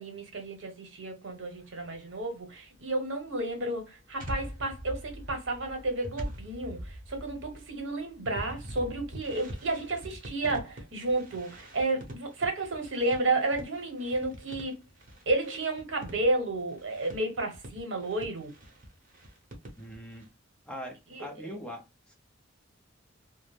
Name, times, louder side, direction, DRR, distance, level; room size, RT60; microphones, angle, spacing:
voice 1, 0.0-14.8 15.3-18.5 21.1-21.3, right 2 dB, 70° right, 0.9 m, -32 dB
sound 1, 1.6-2.1 3.4-20.3, equal, 45° right, 0.9 m, -44 dB
voice 2, 19.8-20.3 20.7-22.1, equal, 5° left, 0.6 m, -42 dB
2.5 x 2.0 x 3.3 m
head